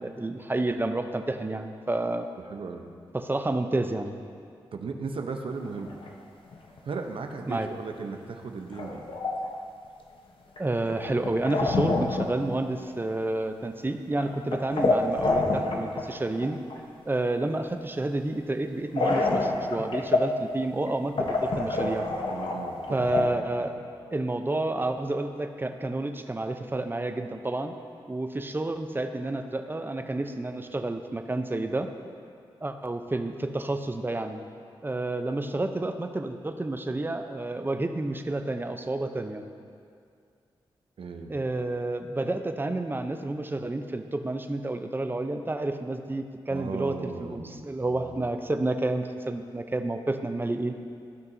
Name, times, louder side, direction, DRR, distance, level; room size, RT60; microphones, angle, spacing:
voice 1, 0.0-2.3 3.1-4.2 7.5-7.7 10.6-16.6 17.1-22.1 22.9-23.7 24.1-27.7 28.1-31.9 32.6-34.4 34.8-39.4 41.3-50.8, right 2 dB, 20° right, 7 dB, 0.6 m, -30 dB
voice 2, 2.5-2.9 4.7-5.9 6.8-9.0 22.3-23.1 23.6-23.9 41.0-41.3 46.5-48.2, right 4 dB, 65° right, 4 dB, 0.8 m, -36 dB
sound 1, 5.7-6.2 6.5-6.8 7.3-7.4 7.6-7.7 8.7-9.6 10.6-12.6 12.9-13.4 14.1-16.1 16.4-16.8 19.0-20.4 20.9-21.0 21.2-23.3, left 3 dB, 60° left, 1.0 m, -27 dB
15.0 x 5.3 x 2.7 m, 2.3 s
cardioid pair, 55°, 10 cm